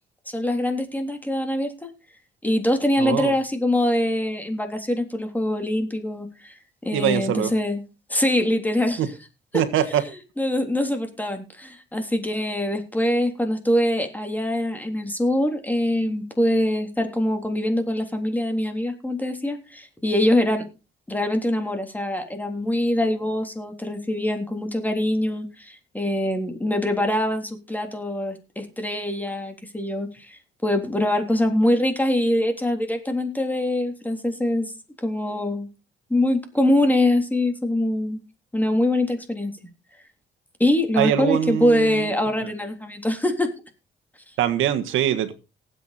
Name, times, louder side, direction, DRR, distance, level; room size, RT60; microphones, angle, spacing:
voice 1, 0.3-1.9 2.4-7.8 8.1-9.0 10.4-20.6 21.1-34.7 35.0-35.7 36.1-38.2 38.5-39.5 40.6-43.5, left 1 dB, 10° left, 5 dB, 3.4 m, -23 dB
voice 2, 3.0-3.3 6.9-7.5 9.0-9.1 9.5-10.0 41.0-42.1 44.4-45.3, right 10 dB, 90° right, 9 dB, 1.6 m, -23 dB
18.5 x 8.3 x 4.3 m, 0.31 s
cardioid pair, 90°, 20 cm